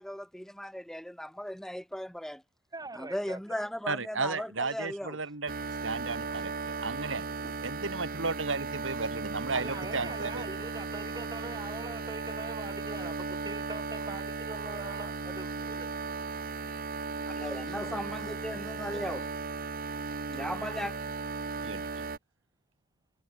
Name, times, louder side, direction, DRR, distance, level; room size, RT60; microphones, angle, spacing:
voice 1, 0.0-2.4 3.0-5.2 17.4-19.3 20.3-20.9, equal, ahead, 0.9 m, -37 dB
voice 2, 2.7-3.6 9.5-15.9, right 2 dB, 20° right, 2.9 m, -42 dB
voice 3, 3.9-5.5 5.8-10.5 21.6-22.1, right 4 dB, 80° right, 3.0 m, -34 dB
sound 1, 5.5-22.2, right 4 dB, 50° right, 1.3 m, -36 dB
head